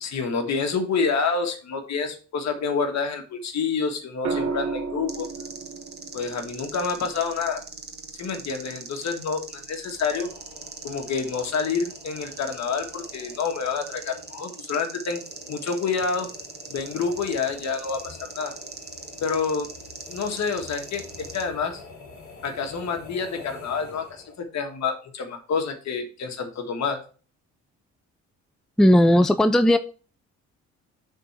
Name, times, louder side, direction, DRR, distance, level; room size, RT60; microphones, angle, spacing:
voice 1, 0.0-5.3 6.1-7.6 8.2-10.3 10.8-15.2 15.5-16.3 16.7-18.5 19.2-19.7 20.1-21.8 22.4-27.0, left 5 dB, 65° left, 5 dB, 1.6 m, -28 dB
sound 1, 4.2-8.4 10.1-10.5, right 4 dB, 60° right, 1.0 m, -34 dB
sound 2, 5.1-21.4, right 4 dB, 35° right, 1.4 m, -41 dB
sound 3, 9.9-24.5, left 4 dB, 45° left, 3.3 m, -46 dB
voice 2, 28.8-29.8, equal, ahead, 10 dB, 0.5 m, -16 dB
6.5 x 3.9 x 5.8 m, 0.37 s
cardioid pair, 90°, 30 cm